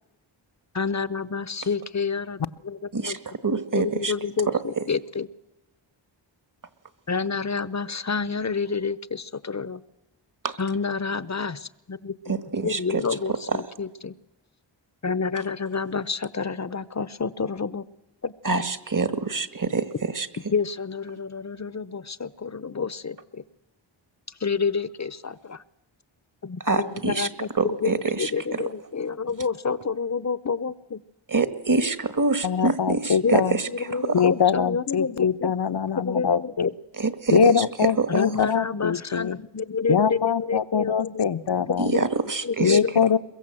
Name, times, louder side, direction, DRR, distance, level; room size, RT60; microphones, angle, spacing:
voice 1, 0.7-2.8 3.0-3.2 3.7-5.3 7.1-9.8 10.6-12.3 12.6-14.1 15.0-17.8 18.2-18.3 20.5-23.4 24.4-25.6 26.4-27.9 28.2-31.0 33.2-33.4 33.9-35.5 36.0-36.7 38.1-41.2 41.7-42.0 42.4-43.0, left 5 dB, 35° left, 17 dB, 0.9 m, -28 dB
voice 2, 2.9-4.1 4.5-4.8 10.4-10.6 12.2-13.6 18.4-20.3 26.6-27.3 27.5-28.6 31.3-34.3 36.9-38.1 41.8-42.8, right 4 dB, 40° right, 11 dB, 1.7 m, -26 dB
voice 3, 32.4-33.6 34.1-36.7 37.3-39.4 39.9-41.9 42.6-43.2, left 7 dB, 60° left, 14 dB, 1.0 m, -23 dB
22.5 x 22.5 x 7.8 m, 0.96 s
cardioid pair, 55°, 46 cm